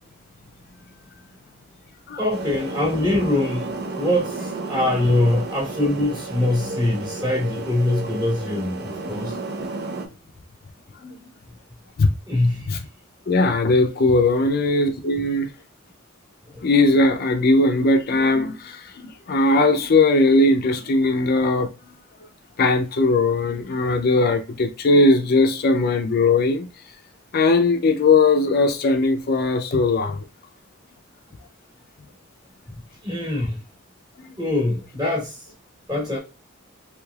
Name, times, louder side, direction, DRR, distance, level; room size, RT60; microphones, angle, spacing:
voice 1, 2.2-9.3 12.3-12.7 16.5-16.6 33.0-33.6 34.4-35.4 35.9-36.2, left 1 dB, 20° right, 1.3 m, -23 dB
sound 1, 2.3-10.1, right 3 dB, 50° right, 0.5 m, -32 dB
voice 2, 13.3-15.5 16.6-18.9 19.3-21.7 22.6-26.7 27.3-30.2, left 2 dB, 50° left, 0.4 m, -19 dB
3.2 x 3.1 x 2.3 m
head